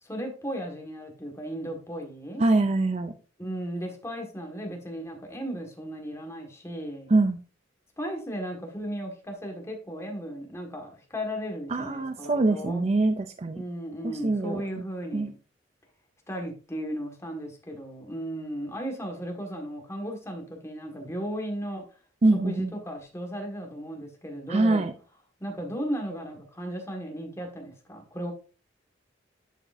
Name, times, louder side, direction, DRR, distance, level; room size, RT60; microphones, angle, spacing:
voice 1, 0.0-2.4 3.4-7.1 8.0-12.8 13.6-15.4 16.3-21.8 22.4-24.9 25.4-28.3, equal, 15° left, 1 dB, 1.7 m, -35 dB
voice 2, 2.4-3.1 7.1-7.4 11.7-13.6 14.0-14.8 15.1-15.3 22.2-22.7 24.5-24.9, right 2 dB, 35° right, 8 dB, 0.5 m, -24 dB
11.0 x 5.0 x 2.7 m, 0.36 s
head